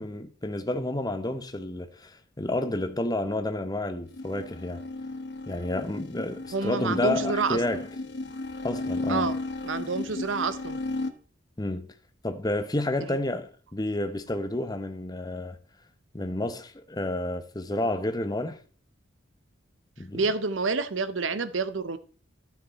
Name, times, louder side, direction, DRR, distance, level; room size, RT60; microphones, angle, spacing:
voice 1, 0.0-4.8 5.5-7.9 8.6-9.3 11.6-11.9 12.2-15.6 16.1-18.6 20.0-20.2, left 1 dB, 20° left, 0.9 m, -30 dB
sound 1, 4.1-11.1, left 2 dB, 60° left, 1.0 m, -34 dB
voice 2, 6.5-7.6 9.1-9.4 9.6-10.8 20.1-22.0, right 4 dB, 75° right, 0.8 m, -28 dB
12.5 x 5.9 x 4.2 m
head